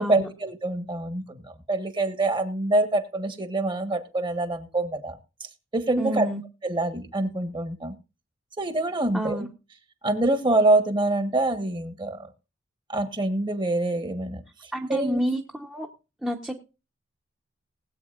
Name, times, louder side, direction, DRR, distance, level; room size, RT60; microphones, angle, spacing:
voice 1, 0.0-6.3 6.6-7.9 8.6-9.5 10.0-12.3 12.9-15.2, right 2 dB, 25° right, 9 dB, 1.4 m, -26 dB
voice 2, 6.0-6.4 9.1-9.5 14.7-15.9 16.2-16.5, equal, 5° right, 0 dB, 1.0 m, -29 dB
20.0 x 8.4 x 2.5 m, 0.30 s
head